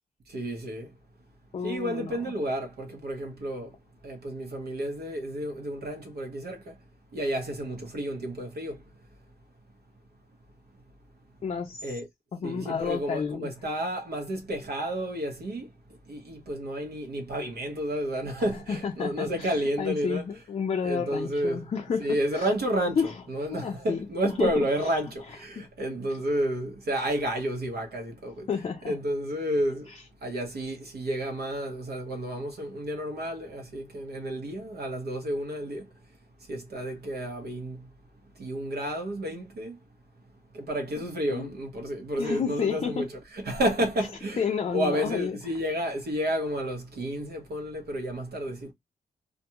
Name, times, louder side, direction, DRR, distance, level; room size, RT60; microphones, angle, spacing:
voice 1, 0.3-0.9 1.6-3.7 4.0-6.7 7.1-8.8 11.8-12.1 12.4-15.7 16.1-20.2 20.8-21.6 22.0-23.0 23.3-28.5 28.9-29.9 30.2-35.9 36.5-37.9 38.4-39.8 40.5-43.1 43.3-44.4 44.7-48.7, equal, 80° right, 1.0 m, -31 dB
voice 2, 1.5-2.3 11.4-12.0 12.3-13.5 18.7-22.5 23.0-23.2 23.5-24.1 24.4-24.9 25.2-25.7 28.5-29.0 29.9-30.0 41.0-41.5 42.2-43.1 44.4-45.4, left 6 dB, 40° left, 0.4 m, -31 dB
2.5 x 2.3 x 2.8 m
wide cardioid pair, 150°, 16 cm